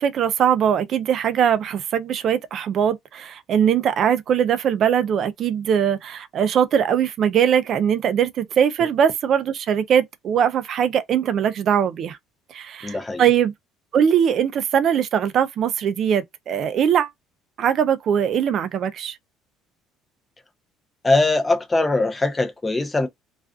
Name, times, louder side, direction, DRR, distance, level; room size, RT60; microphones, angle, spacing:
voice 1, 0.0-12.2 12.5-13.5 13.9-17.1 17.6-19.2, right 8 dB, 45° right, 0.4 m, -21 dB
voice 2, 12.8-13.2 21.0-23.1, left 2 dB, 15° left, 0.5 m, -21 dB
2.4 x 2.3 x 2.3 m
cardioid pair, 155°, 0 cm